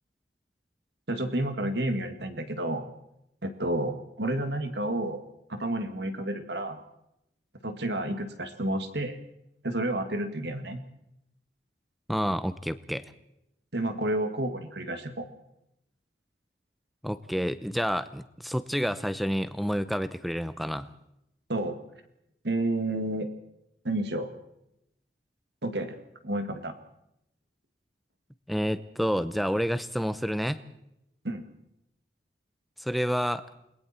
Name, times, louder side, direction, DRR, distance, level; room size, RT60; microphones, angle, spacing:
voice 1, 1.1-2.9 3.4-5.2 5.5-6.8 7.6-9.2 9.6-10.8 13.7-15.3 21.5-21.8 22.4-23.3 23.8-24.3 25.6-26.0 26.2-26.7 31.2-31.4, right 1 dB, 75° right, 8 dB, 2.2 m, -30 dB
voice 2, 12.1-13.0 17.0-20.9 28.5-30.6 32.8-33.4, equal, ahead, 13 dB, 0.7 m, -29 dB
28.5 x 21.0 x 4.4 m, 0.81 s
head